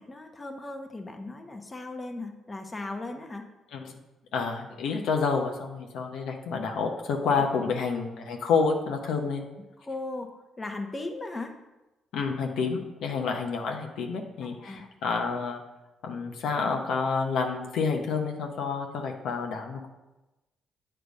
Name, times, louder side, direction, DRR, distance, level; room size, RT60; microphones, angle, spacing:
voice 1, 0.0-3.4 7.4-7.5 9.8-10.3 10.6-11.5 14.6-14.8, left 2 dB, 25° left, 4 dB, 0.9 m, -37 dB
voice 2, 4.3-9.4 12.1-15.6 16.0-19.9, left 5 dB, 80° left, 2 dB, 0.8 m, -29 dB
8.3 x 3.4 x 5.2 m, 1.0 s
supercardioid pair, 70°, 0 cm